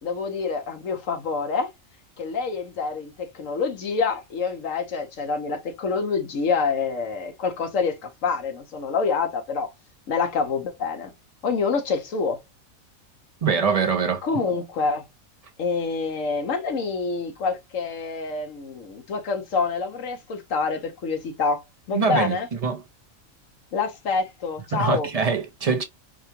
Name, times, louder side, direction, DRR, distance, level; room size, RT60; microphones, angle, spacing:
voice 1, 0.0-1.7 2.2-9.7 10.1-11.1 11.4-12.4 14.2-15.0 15.6-22.5 23.7-25.1, left 5 dB, 65° left, 1.3 m, -27 dB
voice 2, 13.4-14.2 21.9-22.4 22.6-22.8 24.7-25.8, right 5 dB, 45° right, 0.5 m, -23 dB
4.8 x 2.2 x 2.8 m
omnidirectional pair, 1.5 m